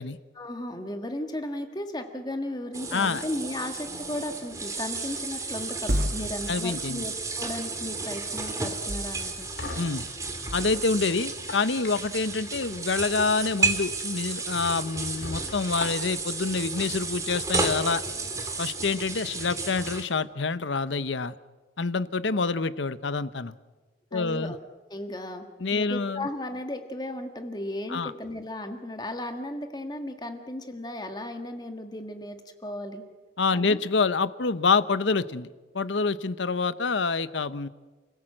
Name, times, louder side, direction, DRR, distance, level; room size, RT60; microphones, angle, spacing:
voice 1, 0.3-9.5 24.1-24.6 24.9-25.4 25.7-32.4 32.6-33.0 33.5-33.8, left 1 dB, 20° left, 5 dB, 1.7 m, -35 dB
sound 1, 2.7-20.0, right 3 dB, 15° right, 2.3 m, -33 dB
voice 2, 2.9-3.2 6.5-7.1 9.8-10.1 10.5-18.0 18.6-21.3 21.8-23.5 24.1-24.5 25.6-26.3 27.9-28.1 33.4-35.5 35.7-37.7, left 4 dB, 80° left, 14 dB, 0.9 m, -27 dB
sound 2, 5.9-7.1 8.9-9.8 10.3-10.9, equal, 55° right, 1.9 m, -33 dB
sound 3, 9.0-10.7 11.3-12.4 13.4-13.6 14.0-14.1 14.6-14.7 15.2-16.3, left 2 dB, 65° left, 2.4 m, -39 dB
29.5 x 17.0 x 7.8 m, 1.3 s
head